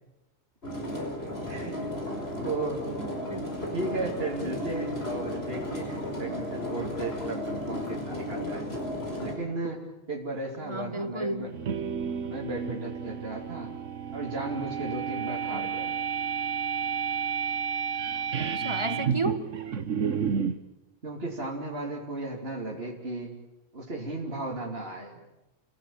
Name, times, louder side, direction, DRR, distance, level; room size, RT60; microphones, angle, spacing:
sound 1, 0.6-9.3, left 1 dB, 50° left, 5.6 m, -34 dB
voice 1, 1.5-1.8 2.4-2.9 3.7-8.7 9.2-11.5 12.2-13.7 14.1-16.0 21.0-23.4 23.7-25.2, right 2 dB, 50° right, -2 dB, 3.5 m, -35 dB
voice 2, 3.3-3.7 10.7-11.5 15.5-15.7 18.4-19.5, right 2 dB, 25° right, 10 dB, 1.5 m, -33 dB
sound 2, 11.5-20.6, right 7 dB, 75° right, 1.4 m, -31 dB
29.0 x 17.5 x 8.9 m, 0.95 s
omnidirectional pair, 1.3 m